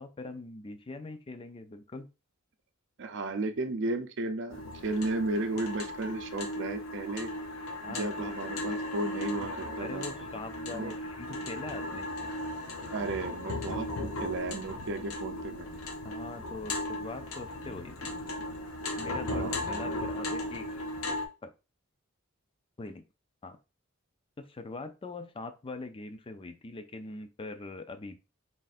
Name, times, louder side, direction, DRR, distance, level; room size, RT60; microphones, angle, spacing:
voice 1, 0.0-2.1 7.8-8.3 9.8-12.1 16.0-18.1 19.0-20.8 21.4-21.5 22.8-23.1 23.4-23.6 24.4-28.2, left 3 dB, 25° left, 9 dB, 0.4 m, -42 dB
voice 2, 3.0-7.3 7.9-10.1 10.7-10.9 12.9-15.8 19.3-19.6, right 2 dB, 60° right, 8 dB, 0.6 m, -34 dB
sound 1, 4.5-21.3, left 1 dB, 75° left, 0.7 m, -36 dB
3.7 x 2.5 x 4.1 m, 0.29 s
head